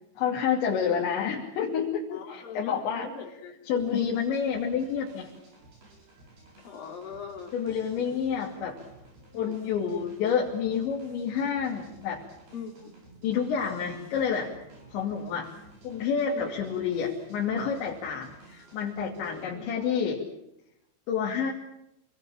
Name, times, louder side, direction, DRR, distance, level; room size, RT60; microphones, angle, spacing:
voice 1, 0.2-3.1 3.7-5.3 7.5-8.8 9.3-12.2 13.2-14.5 14.9-15.5 15.8-20.2 21.1-21.5, left 7 dB, 75° left, -2 dB, 5.0 m, -29 dB
voice 2, 2.1-3.6 3.9-4.2 6.6-7.5 7.8-8.2 9.3-9.6 12.5-13.0 16.3-16.6 19.1-19.6, left 6 dB, 55° left, 2 dB, 4.7 m, -41 dB
sound 1, 3.7-19.9, right 1 dB, 55° right, 8.8 m, -54 dB
28.0 x 20.0 x 8.8 m, 0.83 s
omnidirectional pair, 5.2 m